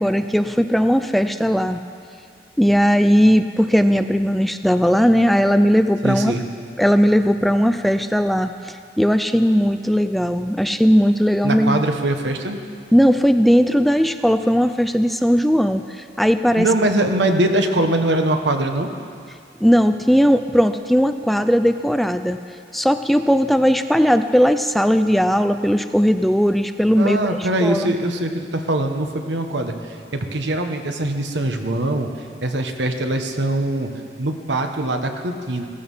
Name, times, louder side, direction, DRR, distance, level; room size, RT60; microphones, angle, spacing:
voice 1, 0.0-1.8 2.6-6.3 6.8-11.8 12.9-16.7 19.6-22.4 22.7-27.9, equal, ahead, 9 dB, 0.3 m, -17 dB
voice 2, 6.0-6.4 11.4-12.6 16.6-18.9 27.0-29.7 30.1-32.1 32.4-33.9 34.2-35.6, right 1 dB, 85° right, 5 dB, 1.3 m, -22 dB
16.5 x 15.5 x 5.6 m, 2.3 s
head